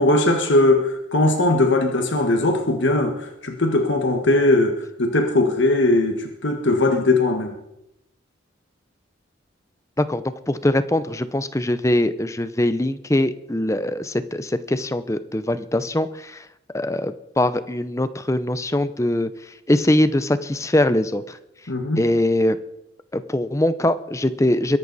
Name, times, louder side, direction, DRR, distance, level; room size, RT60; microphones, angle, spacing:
voice 1, 0.0-7.5 21.7-22.0, left 2 dB, 70° left, 4 dB, 1.5 m, -19 dB
voice 2, 10.0-16.4 16.7-21.4 22.0-22.6 23.1-24.8, left 1 dB, 15° left, 13 dB, 0.6 m, -22 dB
22.5 x 11.0 x 4.1 m, 0.86 s
head